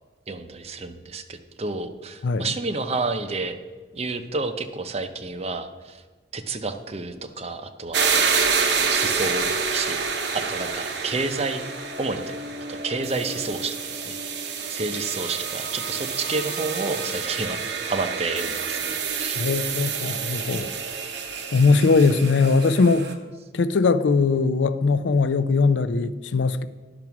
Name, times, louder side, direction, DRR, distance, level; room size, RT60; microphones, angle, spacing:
voice 1, 0.3-3.6 3.9-6.0 6.3-8.2 8.9-10.0 10.3-11.6 12.0-12.3 12.7-14.2 14.7-19.4, right 3 dB, 35° right, 0.6 m, -30 dB
sound 1, 7.9-23.1, right 5 dB, 70° right, 0.9 m, -28 dB
voice 2, 19.4-20.7 21.5-23.1 23.5-26.7, left 4 dB, 80° left, 0.5 m, -20 dB
11.0 x 6.0 x 5.8 m
head